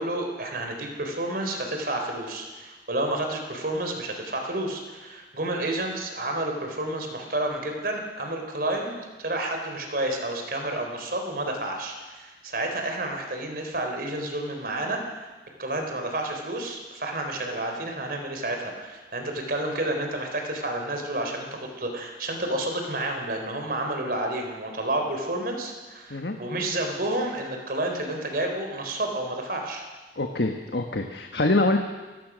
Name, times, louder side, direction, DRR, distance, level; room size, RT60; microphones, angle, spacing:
voice 1, 0.0-15.3 15.6-29.8, right 1 dB, 55° right, 3 dB, 4.0 m, -30 dB
voice 2, 30.2-31.8, left 2 dB, 70° left, 4 dB, 1.4 m, -24 dB
29.5 x 17.5 x 6.3 m, 1.3 s
head